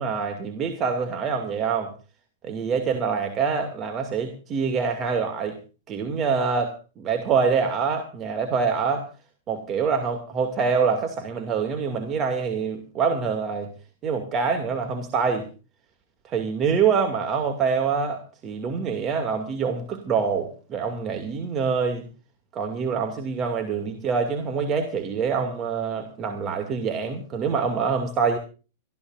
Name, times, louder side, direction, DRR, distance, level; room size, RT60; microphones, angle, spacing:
voice 1, 0.0-1.9 2.4-5.6 5.9-9.1 9.5-13.7 14.0-15.5 16.2-22.1 22.5-28.4, right 5 dB, 30° right, 5 dB, 2.4 m, -25 dB
25.5 x 14.0 x 2.6 m, 0.35 s
hypercardioid pair, 105°, 0 cm